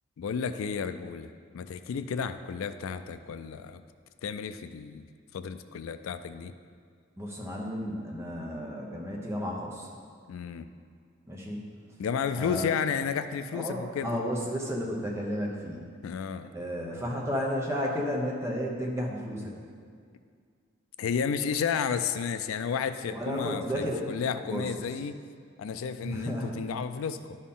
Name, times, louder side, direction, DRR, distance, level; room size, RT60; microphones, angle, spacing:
voice 1, 0.2-3.8 4.2-5.1 5.3-6.5 10.3-10.7 12.0-14.2 16.0-16.5 21.0-25.2 25.6-27.4, left 6 dB, 80° left, 11 dB, 0.3 m, -32 dB
voice 2, 7.2-9.9 11.3-11.6 12.4-12.7 13.5-15.9 16.5-19.5 23.1-24.1 24.5-24.9 26.0-26.5, equal, 15° right, -2 dB, 0.9 m, -33 dB
11.0 x 4.3 x 3.7 m, 2.1 s
head